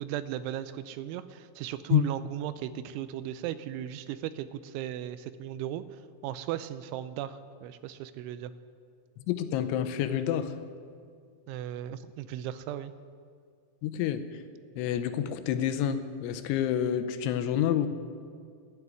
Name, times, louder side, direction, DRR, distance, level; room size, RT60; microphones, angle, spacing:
voice 1, 0.0-8.5 11.5-12.9, right 11 dB, 90° right, 13 dB, 3.0 m, -36 dB
voice 2, 9.3-10.6 13.8-14.2 14.8-17.9, left 10 dB, 85° left, 10 dB, 3.2 m, -28 dB
12.5 x 11.0 x 9.2 m, 2.2 s
omnidirectional pair, 5.4 m